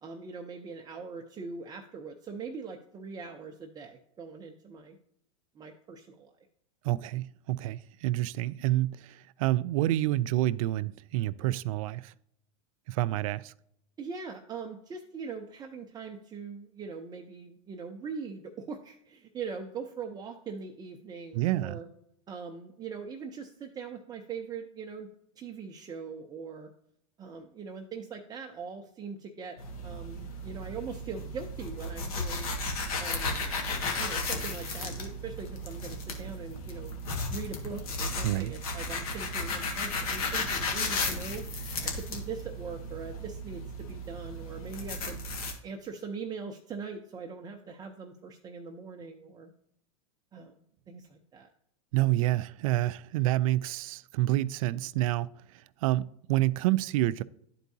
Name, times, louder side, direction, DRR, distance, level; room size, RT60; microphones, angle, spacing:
voice 1, 0.0-5.0 5.5-6.3 14.0-21.9 22.3-25.1 25.4-26.7 27.2-32.5 33.0-33.3 34.0-36.9 37.3-41.5 41.8-45.2 45.6-49.5 50.3-50.6 50.9-51.5, right 5 dB, 20° right, 0.7 m, -41 dB
voice 2, 6.8-12.1 12.9-13.5 21.3-21.8 38.2-38.5 51.9-55.3 55.8-57.2, right 16 dB, 65° right, 0.4 m, -28 dB
sound 1, 29.6-45.5, left 2 dB, 75° left, 1.7 m, -34 dB
11.5 x 4.6 x 2.7 m
supercardioid pair, 125°, 19 cm